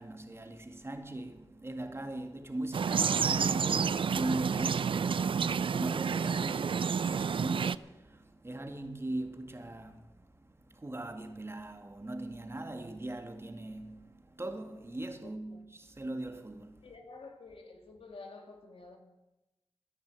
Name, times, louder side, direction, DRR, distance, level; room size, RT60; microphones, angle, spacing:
voice 1, 0.0-16.9, right 1 dB, 25° right, 1.8 m, -40 dB
sound 1, 2.7-7.8, right 6 dB, 70° right, 0.4 m, -29 dB
voice 2, 15.2-15.7 16.8-19.0, left 3 dB, 85° left, 2.4 m, -50 dB
14.5 x 10.5 x 7.6 m
wide cardioid pair, 75°, 9 cm